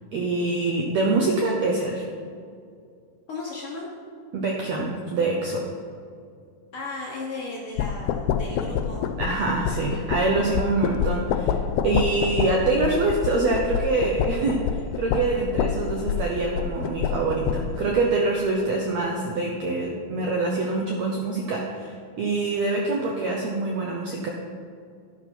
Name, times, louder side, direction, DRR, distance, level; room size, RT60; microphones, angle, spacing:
voice 1, 0.1-2.1 4.3-5.7 9.2-11.6 11.8-24.3, right 3 dB, 75° right, 0 dB, 1.6 m, -25 dB
voice 2, 3.3-3.9 6.7-9.0, left 3 dB, 65° left, -4 dB, 1.3 m, -35 dB
sound 1, 7.8-17.8, left 8 dB, 85° left, 2.5 m, -27 dB
12.0 x 11.5 x 4.5 m, 2.3 s
omnidirectional pair, 4.4 m